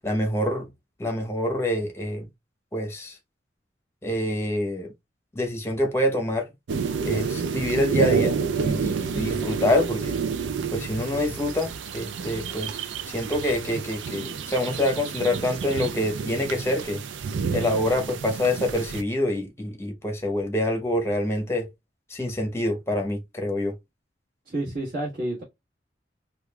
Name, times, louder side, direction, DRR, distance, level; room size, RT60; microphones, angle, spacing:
voice 1, 0.0-0.7 1.0-2.3 2.7-3.2 4.0-4.9 5.3-6.5 7.0-10.2 10.7-12.8 13.1-17.0 17.5-21.7 22.1-23.7, left 1 dB, 15° left, 0.8 m, -26 dB
sound 1, 6.7-19.0, right 5 dB, 85° right, 0.4 m, -29 dB
voice 2, 24.4-25.4, right 1 dB, 50° right, 1.5 m, -29 dB
4.9 x 2.3 x 2.2 m
head